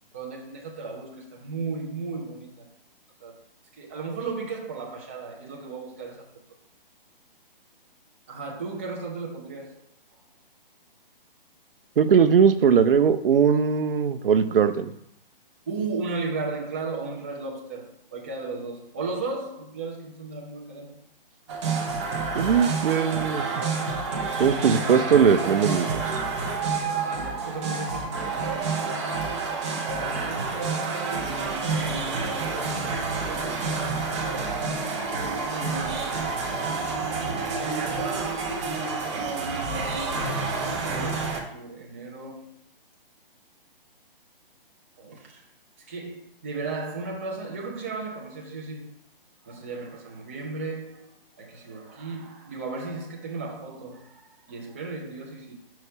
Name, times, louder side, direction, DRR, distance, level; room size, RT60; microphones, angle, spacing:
voice 1, 0.1-2.7 3.2-3.4 3.8-6.2 8.3-9.8 15.7-21.0 26.4-29.1 29.8-32.7 33.0-33.7 34.9-36.1 36.7-38.5 40.3-42.5 45.0-45.4 45.8-48.9 49.4-55.5, right 3 dB, 15° right, 0.4 m, -36 dB
voice 2, 12.0-14.9 22.3-23.6 24.4-26.2, right 7 dB, 70° right, 0.6 m, -20 dB
sound 1, 21.5-41.4, right 4 dB, 30° right, 0.8 m, -28 dB
5.7 x 3.0 x 5.5 m
hypercardioid pair, 160°, 29 cm